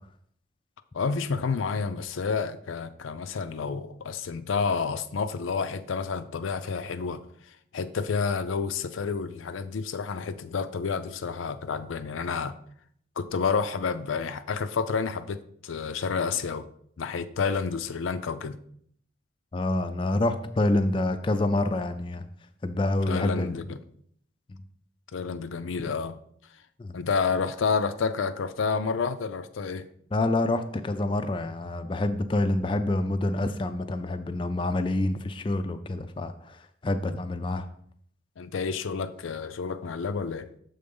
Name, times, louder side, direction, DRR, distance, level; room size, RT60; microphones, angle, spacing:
voice 1, 0.9-7.2 7.7-12.5 13.2-16.7 17.0-18.6 23.1-23.8 25.1-26.2 26.9-29.9 38.4-40.5, left 5 dB, 85° left, 11 dB, 0.5 m, -29 dB
voice 2, 19.5-22.2 22.6-23.6 24.5-24.6 25.8-25.9 26.8-27.0 30.1-37.7, left 2 dB, 25° left, 8 dB, 0.3 m, -27 dB
6.6 x 3.9 x 5.3 m, 0.64 s
head